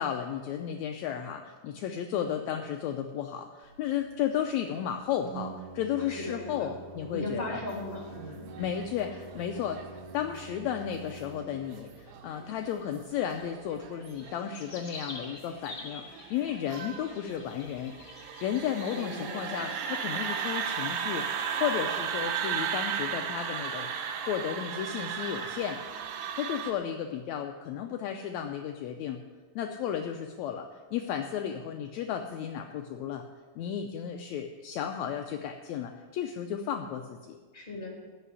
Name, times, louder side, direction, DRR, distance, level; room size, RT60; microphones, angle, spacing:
voice 1, 0.0-7.6 8.6-9.8 10.1-17.9 18.4-23.9 24.2-25.8 26.3-29.2 29.6-33.2 33.6-37.4, left 9 dB, 80° left, 5 dB, 1.6 m, -33 dB
Organ, 3.6-13.8, right 4 dB, 70° right, 2.0 m, -47 dB
voice 2, 6.0-6.8 7.1-8.5 18.9-19.7 37.5-37.9, left 2 dB, 15° left, 0 dB, 2.6 m, -38 dB
sound 1, 7.9-26.7, right 7 dB, 85° right, 2.7 m, -36 dB
sound 2, 14.0-21.2, left 3 dB, 45° left, 2.5 m, -48 dB
14.0 x 5.7 x 9.6 m, 1.4 s
omnidirectional pair, 3.9 m